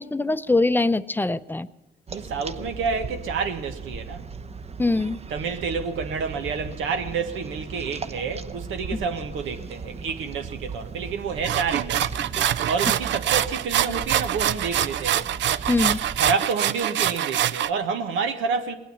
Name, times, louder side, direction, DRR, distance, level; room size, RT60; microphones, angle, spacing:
voice 1, 0.0-1.7 4.8-5.2 8.9-9.0 15.7-16.0, left 2 dB, 10° left, 0.6 m, -23 dB
sound 1, 2.1-16.3, right 4 dB, 30° right, 0.9 m, -37 dB
voice 2, 2.1-4.2 5.3-12.3 12.7-15.3 16.2-18.7, right 5 dB, 85° right, 1.5 m, -29 dB
sound 2, 11.4-17.7, right 11 dB, 65° right, 0.5 m, -25 dB
19.5 x 9.1 x 7.2 m
cardioid pair, 90°, 20 cm